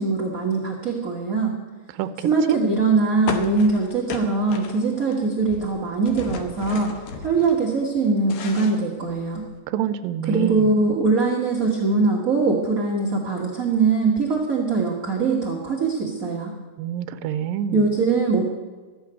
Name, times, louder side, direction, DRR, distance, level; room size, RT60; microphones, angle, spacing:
voice 1, 0.0-1.5 2.2-6.9 7.2-9.5 10.3-16.5 17.7-18.5, right 4 dB, 40° right, -2 dB, 1.3 m, -22 dB
voice 2, 2.0-2.6 9.7-10.7 16.8-17.8, right 10 dB, 85° right, 11 dB, 2.4 m, -27 dB
sound 1, 3.3-5.2 5.4-7.6 8.0-9.5, left 5 dB, 70° left, 2.2 m, -34 dB
14.0 x 6.9 x 9.6 m, 1.4 s
omnidirectional pair, 3.9 m